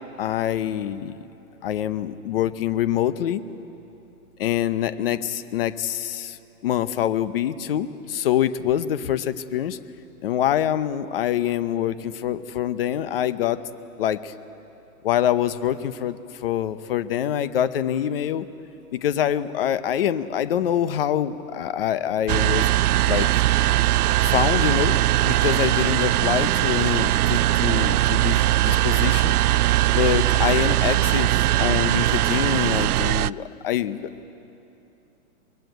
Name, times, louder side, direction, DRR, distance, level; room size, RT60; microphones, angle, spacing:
voice 1, 0.2-1.1 1.6-3.4 4.4-6.4 6.6-9.8 10.2-13.6 14.0-14.3 15.0-18.5 18.9-22.7 23.0-23.4 24.2-29.4 29.9-34.3, left 10 dB, 40° left, 14 dB, 0.8 m, -25 dB
sound 1, 22.3-33.3, right 15 dB, 85° right, 0.5 m, -20 dB
24.5 x 21.0 x 9.3 m, 2.9 s
hypercardioid pair, 165°, 44 cm